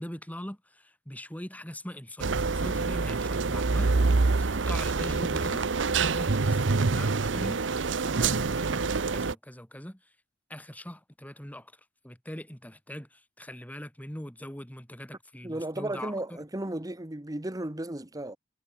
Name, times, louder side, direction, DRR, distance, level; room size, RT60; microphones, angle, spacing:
voice 1, 0.0-4.0 4.4-10.0 10.5-11.7 12.0-16.4, equal, 10° left, 3.4 m, -41 dB
sound 1, 2.2-9.3, right 4 dB, 75° right, 0.8 m, -26 dB
voice 2, 15.4-18.4, right 1 dB, 20° right, 1.3 m, -34 dB
head